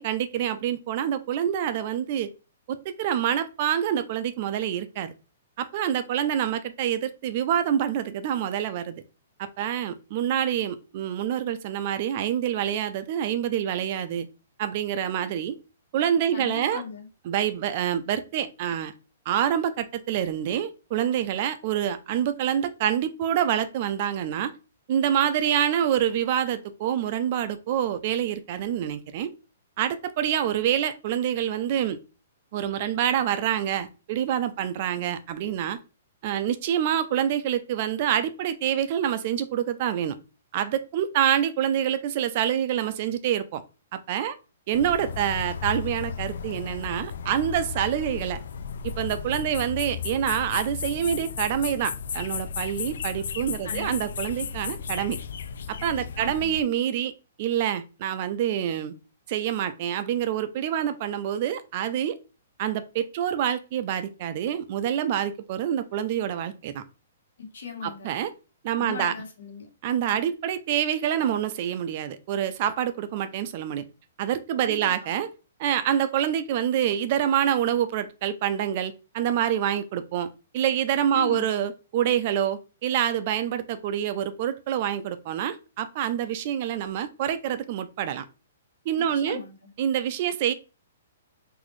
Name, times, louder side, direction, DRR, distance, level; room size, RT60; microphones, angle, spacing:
voice 1, 0.0-2.3 2.7-5.1 5.6-9.0 9.4-14.3 14.6-15.6 15.9-16.8 17.3-18.9 19.3-24.5 24.9-29.3 29.8-32.0 32.5-35.8 36.2-40.2 40.5-43.6 43.9-44.4 44.7-48.4 48.8-55.2 55.7-57.1 57.4-58.9 59.3-62.2 62.6-66.8 67.8-68.3 68.6-69.1 69.8-73.8 74.2-75.3 75.6-80.3 80.5-88.2 88.9-89.4 89.8-90.5, right 10 dB, 30° right, 12 dB, 0.3 m, -26 dB
voice 2, 16.3-17.1 53.6-53.9 54.4-54.5 56.2-56.5 67.4-68.1 68.8-69.7 74.6-75.1 81.1-81.6 89.0-89.7, left 4 dB, 80° left, 1 dB, 1.6 m, -38 dB
sound 1, 44.7-56.6, left 6 dB, 65° left, 0.3 m, -34 dB
4.0 x 2.5 x 3.1 m, 0.31 s
hypercardioid pair, 175°, 0 cm